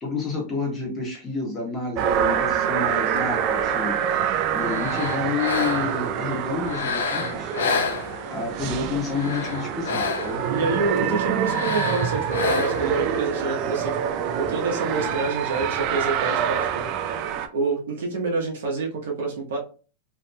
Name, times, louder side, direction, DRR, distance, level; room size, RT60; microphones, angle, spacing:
voice 1, 0.0-4.0 4.5-7.5 8.3-10.4 11.0-11.1, left 4 dB, 20° left, -1 dB, 1.2 m, -29 dB
sound 1, 2.0-17.5, right 8 dB, 45° right, 0.4 m, -26 dB
sound 2, 4.6-6.1 6.6-8.5 9.0-10.5 11.4-13.0, left 4 dB, 80° left, 0.4 m, -29 dB
voice 2, 7.1-7.4 10.5-16.9 17.5-19.6, right 3 dB, 70° right, 0 dB, 0.9 m, -27 dB
2.7 x 2.7 x 2.2 m, 0.36 s
hypercardioid pair, 110°, 0 cm